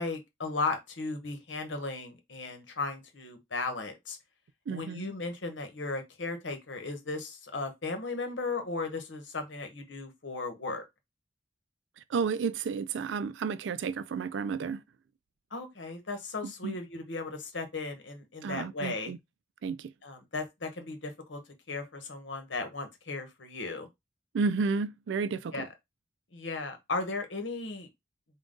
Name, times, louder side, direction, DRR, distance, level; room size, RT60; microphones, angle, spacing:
voice 1, 0.0-4.2 4.7-10.8 15.5-19.1 20.0-21.4 21.7-23.9 25.5-25.7 26.3-27.9, left 3 dB, 85° left, 1.0 m, -36 dB
voice 2, 4.7-5.1 12.1-14.8 16.4-16.8 18.4-19.2 19.6-19.9 24.3-25.7, right 5 dB, 80° right, 0.4 m, -32 dB
3.7 x 2.3 x 3.7 m
head